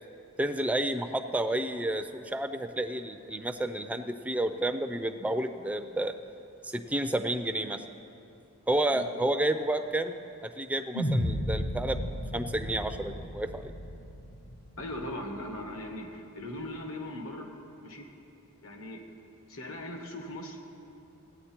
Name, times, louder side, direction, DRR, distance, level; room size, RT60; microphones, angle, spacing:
voice 1, 0.4-6.1 6.6-7.8 8.7-10.1 10.4-12.0 12.3-13.7, right 1 dB, 5° right, 7 dB, 0.4 m, -30 dB
sound 1, 10.9-15.3, equal, 40° left, 0.6 m, -33 dB
voice 2, 14.8-17.5 17.8-18.1 18.6-19.0 19.5-20.6, left 1 dB, 65° left, 3 dB, 1.5 m, -39 dB
16.0 x 9.4 x 4.4 m, 2.7 s
head